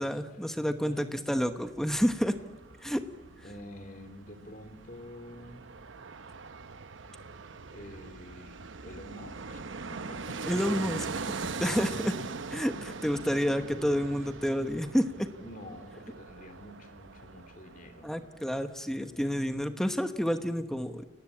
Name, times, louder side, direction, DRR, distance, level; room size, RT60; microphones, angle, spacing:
voice 1, 0.0-2.3 2.8-3.0 10.5-11.3 11.6-12.1 12.5-15.3 18.0-21.0, equal, ahead, 8 dB, 1.1 m, -29 dB
voice 2, 0.9-1.2 3.4-5.7 7.7-10.4 14.0-14.1 15.4-18.2, left 1 dB, 45° left, 7 dB, 3.3 m, -48 dB
Fixed-wing aircraft airplane, 1.6-18.5 18.8-18.9, right 4 dB, 80° right, 0.9 m, -41 dB
29.5 x 19.0 x 8.7 m, 1.4 s
head